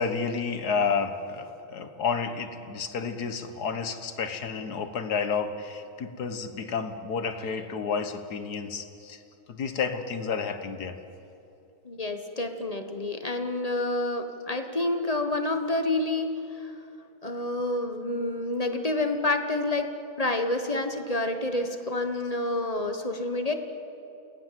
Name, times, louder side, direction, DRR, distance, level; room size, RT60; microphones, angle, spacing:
voice 1, 0.0-9.2 9.5-11.0, left 5 dB, 55° left, 8 dB, 1.8 m, -30 dB
voice 2, 11.8-16.7 17.2-23.5, left 2 dB, 20° left, 6 dB, 1.2 m, -28 dB
29.0 x 18.5 x 7.6 m, 2.7 s
omnidirectional pair, 2.2 m